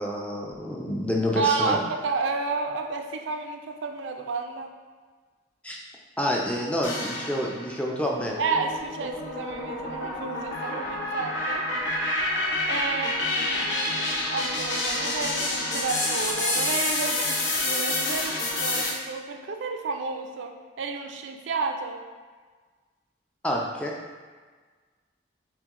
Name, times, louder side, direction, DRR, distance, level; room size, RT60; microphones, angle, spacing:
voice 1, 0.0-1.8 5.6-5.8 6.2-8.3 23.4-23.9, left 1 dB, 5° left, -2 dB, 0.4 m, -28 dB
voice 2, 1.4-4.7 8.4-11.7 12.7-22.0, right 4 dB, 85° right, 4 dB, 0.4 m, -31 dB
sound 1, 6.8-7.7 8.2-18.9, left 2 dB, 75° left, 1.0 m, -28 dB
5.9 x 2.2 x 3.6 m, 1.5 s
head